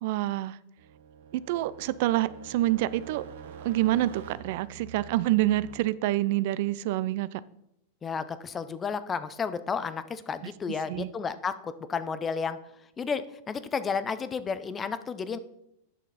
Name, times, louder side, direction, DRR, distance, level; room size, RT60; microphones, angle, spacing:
voice 1, 0.0-0.6 1.3-3.3 3.6-7.4 10.4-10.5 10.9-11.1, right 15 dB, 60° right, 18 dB, 0.3 m, -27 dB
sound 1, 0.8-5.9, right 6 dB, 75° right, 1.1 m, -46 dB
voice 2, 8.0-12.6 13.0-15.4, left 5 dB, 20° left, 13 dB, 0.5 m, -32 dB
9.0 x 6.3 x 4.1 m, 0.81 s
supercardioid pair, 140°, 0 cm